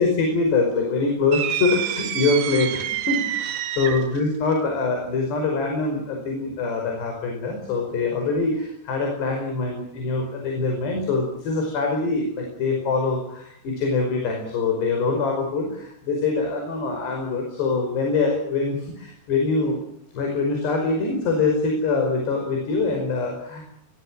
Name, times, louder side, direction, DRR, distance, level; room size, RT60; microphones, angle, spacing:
voice 1, 0.0-19.8 20.1-23.7, left 3 dB, 85° left, 2 dB, 7.3 m, -24 dB
sound 1, 1.3-4.2, right 11 dB, 65° right, 2.0 m, -27 dB
24.5 x 22.5 x 7.6 m, 0.70 s
omnidirectional pair, 4.7 m